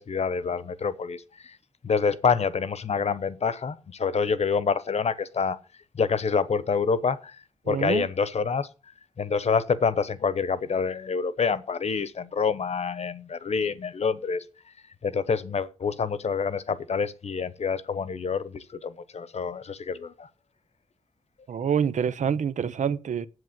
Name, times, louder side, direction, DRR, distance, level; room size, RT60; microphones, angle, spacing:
voice 1, 0.0-1.5 1.8-5.6 6.0-7.3 7.7-8.7 9.2-14.4 15.0-20.3, left 5 dB, 60° left, 1.0 m, -27 dB
voice 2, 7.7-8.1 21.5-23.3, right 7 dB, 85° right, 0.7 m, -26 dB
8.0 x 7.7 x 7.4 m
wide cardioid pair, 85°, 12 cm